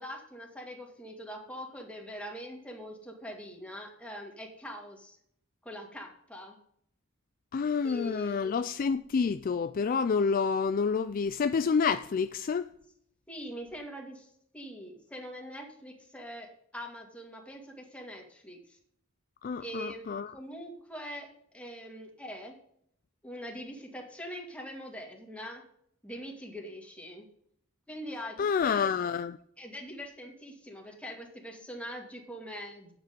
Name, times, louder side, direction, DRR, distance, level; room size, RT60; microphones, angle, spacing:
voice 1, 0.0-5.2 5.6-6.6 7.8-8.4 13.3-18.8 19.6-20.1 20.3-21.3 21.5-22.5 23.2-25.6 26.0-27.3 27.9-28.7 29.6-32.9, equal, 5° left, 2.2 m, -43 dB
voice 2, 7.5-12.7 19.4-20.3 28.4-29.4, left 5 dB, 45° left, 0.3 m, -28 dB
9.8 x 8.2 x 5.1 m
head